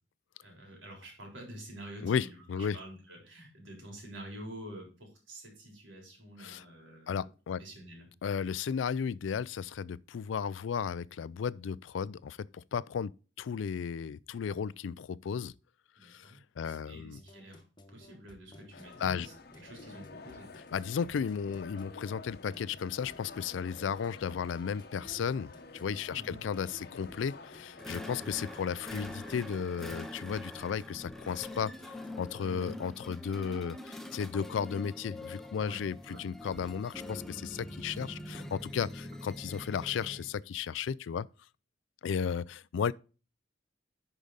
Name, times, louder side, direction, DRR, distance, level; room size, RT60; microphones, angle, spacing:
voice 1, 0.4-7.3 7.6-8.1 16.0-16.4 16.6-17.6 17.9-19.3 19.6-20.5 26.1-26.4 28.0-28.3 32.4-32.7 35.6-36.2, right 1 dB, 85° right, 3.7 m, -48 dB
voice 2, 2.0-2.8 6.4-6.6 7.1-7.6 8.2-13.1 13.4-15.5 16.0-17.2 19.0-19.3 20.6-41.3 42.0-42.9, left 7 dB, 75° left, 0.4 m, -34 dB
sound 1, 17.1-32.3, left 1 dB, 25° left, 1.1 m, -56 dB
sound 2, 18.7-29.4, left 3 dB, 55° left, 0.9 m, -50 dB
sound 3, 27.8-40.3, left 1 dB, ahead, 0.7 m, -44 dB
10.5 x 5.0 x 4.0 m
head